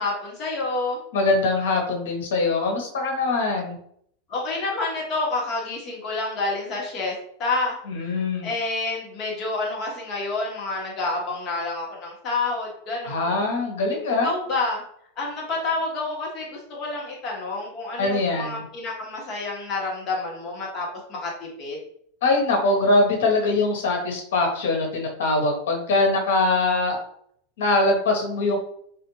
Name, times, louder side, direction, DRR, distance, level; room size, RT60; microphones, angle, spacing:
voice 1, 0.0-1.0 4.3-8.1 8.4-13.4 14.2-14.8 15.2-21.3 21.6-21.8, left 3 dB, 35° left, -2 dB, 1.2 m, -28 dB
voice 2, 1.1-3.7 7.9-8.5 13.0-14.3 18.0-18.6 22.2-27.0 27.6-28.6, left 2 dB, 85° left, 2 dB, 1.0 m, -22 dB
3.5 x 2.4 x 3.0 m, 0.66 s
supercardioid pair, 145°, 0 cm